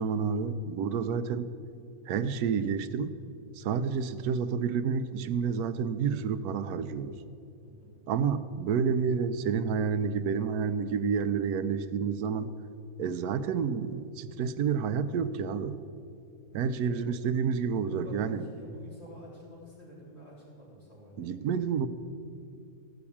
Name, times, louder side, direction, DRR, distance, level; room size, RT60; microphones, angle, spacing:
voice 1, 0.0-1.5 2.1-3.2 3.5-7.1 8.1-12.5 13.0-15.8 16.5-18.4 21.2-21.9, right 6 dB, 90° right, 12 dB, 1.1 m, -29 dB
voice 2, 7.6-7.9 16.5-17.0 17.8-21.3, equal, 45° left, -6 dB, 4.1 m, -49 dB
14.5 x 5.9 x 8.5 m, 2.6 s
omnidirectional pair, 1.6 m